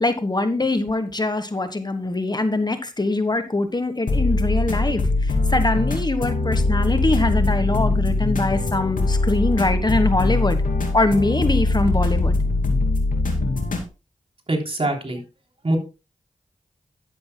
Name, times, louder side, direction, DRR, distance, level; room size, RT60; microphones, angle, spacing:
voice 1, 0.0-10.6 10.9-12.4, left 2 dB, 30° left, 1.3 m, -23 dB
sound 1, 4.1-13.9, left 2 dB, 80° left, 2.7 m, -21 dB
voice 2, 14.5-15.2 15.6-15.8, right 1 dB, 45° right, 3.3 m, -23 dB
12.0 x 11.5 x 2.2 m
cardioid pair, 50°, 14 cm